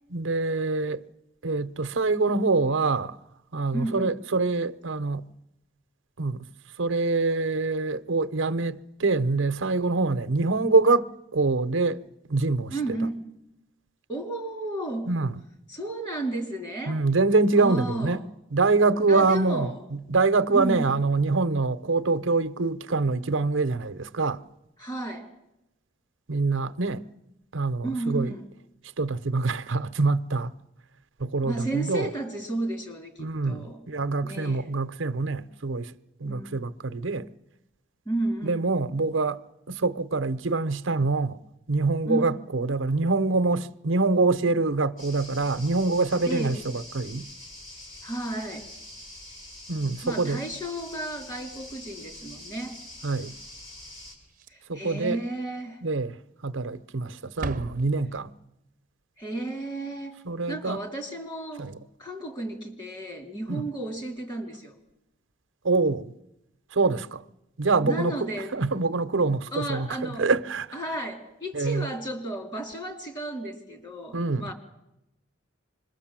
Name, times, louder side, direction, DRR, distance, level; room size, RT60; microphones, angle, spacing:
voice 1, 0.1-1.0 1.4-3.2 3.5-5.2 6.2-6.5 6.8-12.0 12.3-13.0 15.1-15.3 16.9-18.2 18.5-24.4 26.3-27.0 27.5-28.3 29.0-30.5 31.2-32.1 33.2-35.9 36.2-37.3 38.4-39.4 39.7-41.4 41.7-47.3 49.7-50.4 53.0-53.3 54.7-55.2 55.8-56.2 56.4-58.3 60.2-60.8 61.6-61.7 63.5-63.6 65.6-66.1 66.7-67.2 67.6-70.8 71.5-71.9 74.1-74.5, right 3 dB, 75° right, 0.8 m, -25 dB
voice 2, 3.7-4.2 12.7-13.2 14.1-15.1 15.7-17.0 17.6-18.2 19.1-19.8 20.5-21.0 24.8-25.3 27.8-28.4 31.4-33.8 34.2-34.7 36.2-36.6 38.0-38.6 42.1-42.3 46.2-46.6 48.0-48.7 50.0-52.8 54.5-55.8 59.2-60.2 60.5-61.7 62.0-64.7 67.8-68.5 69.5-70.3 70.7-74.5, right 1 dB, 25° left, 3.4 m, -33 dB
sound 1, 45.0-54.1, left 1 dB, 80° left, 6.5 m, -44 dB
Slam, 54.2-54.9 55.1-55.3 55.7-55.8 56.6-57.0 57.2-58.5 61.2-61.3 61.5-61.8 63.3-63.4, right 3 dB, 45° right, 0.8 m, -39 dB
26.0 x 21.5 x 7.5 m
head